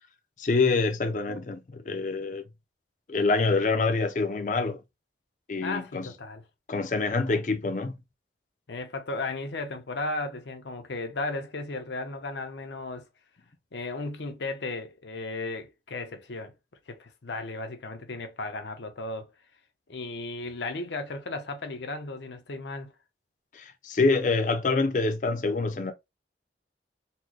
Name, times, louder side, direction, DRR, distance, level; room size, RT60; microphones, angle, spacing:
voice 1, 0.4-2.4 3.1-4.8 5.5-6.1 6.7-8.0 23.5-25.9, left 3 dB, 45° left, 0.5 m, -26 dB
voice 2, 5.6-6.4 7.3-7.4 8.7-13.1 13.7-16.5 16.9-19.3 19.9-22.9, left 2 dB, 80° left, 0.7 m, -35 dB
4.2 x 2.1 x 2.8 m
head